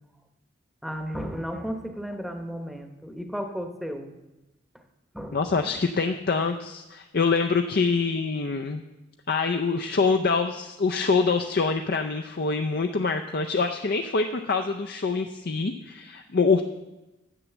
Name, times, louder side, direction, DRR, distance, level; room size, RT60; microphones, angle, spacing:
voice 1, 0.8-4.1 5.1-5.7, equal, ahead, 5 dB, 0.9 m, -34 dB
voice 2, 5.3-8.8 9.3-16.6, left 4 dB, 55° left, 5 dB, 0.5 m, -25 dB
9.9 x 7.4 x 7.1 m, 1.0 s
head